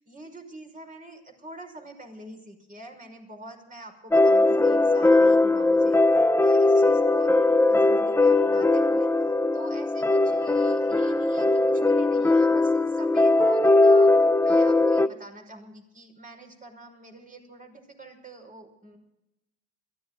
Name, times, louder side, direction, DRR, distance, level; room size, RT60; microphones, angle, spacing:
voice 1, 0.0-6.0 6.4-9.1 9.5-19.0, right 2 dB, 25° right, 3 dB, 5.7 m, -45 dB
sound 1, 4.1-15.1, left 2 dB, 10° left, 0.7 m, -20 dB
22.0 x 15.5 x 3.9 m, 0.89 s
cardioid pair, 90°, 30 cm